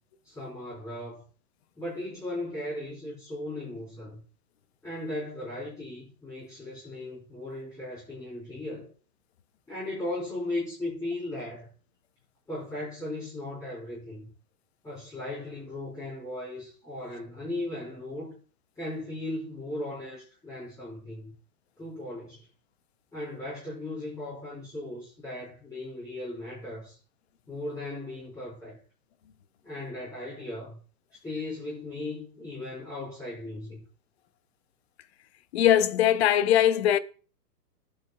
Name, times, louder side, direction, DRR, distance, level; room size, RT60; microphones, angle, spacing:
voice 1, 0.2-1.2 1.8-4.2 4.8-8.9 9.7-11.7 12.5-14.3 14.8-18.4 18.8-21.3 21.8-22.5 23.1-27.0 27.5-28.8 29.6-30.8 31.1-33.8, left 1 dB, 5° left, 3.8 m, -37 dB
voice 2, 35.5-37.0, left 11 dB, 40° left, 0.7 m, -21 dB
17.0 x 8.7 x 2.3 m
hypercardioid pair, 150°, 49 cm